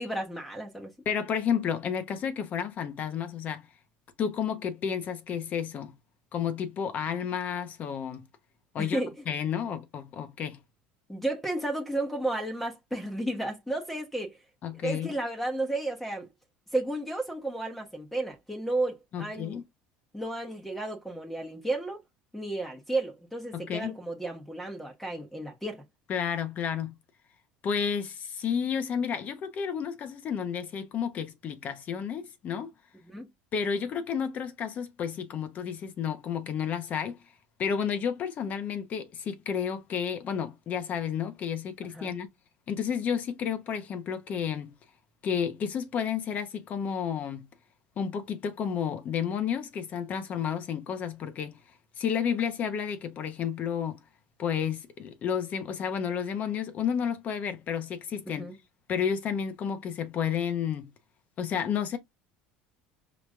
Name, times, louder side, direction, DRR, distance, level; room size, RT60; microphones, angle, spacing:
voice 1, 0.0-0.9 8.8-9.1 11.1-14.4 14.7-16.3 16.7-19.6 20.1-22.0 22.3-25.8 33.0-33.3 41.9-42.1 58.3-58.6, right 2 dB, 5° left, 1.1 m, -33 dB
voice 2, 1.0-3.6 4.2-5.9 6.3-8.2 8.7-9.0 9.3-10.6 14.6-15.1 19.1-19.6 23.5-23.9 26.1-26.9 27.6-32.7 33.5-37.2 37.6-42.3 42.7-44.7 45.2-47.5 48.0-51.6 52.0-54.0 54.4-58.5 58.9-60.9 61.4-62.0, left 7 dB, 45° left, 1.0 m, -31 dB
5.1 x 2.9 x 2.5 m
supercardioid pair, 100°, 4 cm